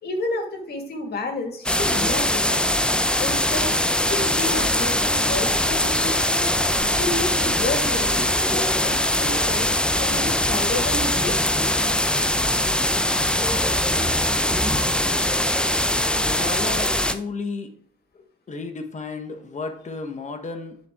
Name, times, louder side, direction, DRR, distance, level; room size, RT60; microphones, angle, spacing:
voice 1, 0.0-2.6 3.2-3.7 4.0-6.5 6.8-9.7 10.0-11.6, left 2 dB, 55° left, 3 dB, 2.1 m, -31 dB
sound 1, 1.7-17.1, left 1 dB, 5° left, 0.5 m, -22 dB
voice 2, 16.2-17.7 18.1-20.8, left 3 dB, 35° left, 7 dB, 1.2 m, -33 dB
10.0 x 4.2 x 3.7 m, 0.62 s
cardioid pair, 90°, 20 cm